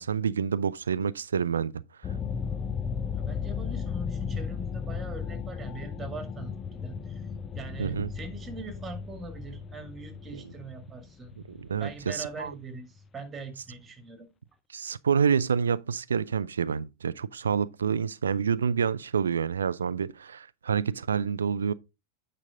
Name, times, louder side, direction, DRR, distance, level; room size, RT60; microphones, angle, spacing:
voice 1, 0.0-1.8 7.8-8.1 10.3-10.4 11.5-12.5 14.7-21.7, right 7 dB, 70° right, 0.4 m, -28 dB
sound 1, 2.0-13.0, left 6 dB, 20° left, 0.6 m, -35 dB
voice 2, 3.1-7.3 7.5-11.3 11.8-14.3, right 3 dB, 20° right, 1.9 m, -42 dB
9.0 x 5.2 x 3.6 m
figure-of-eight pair, 90°, 0 cm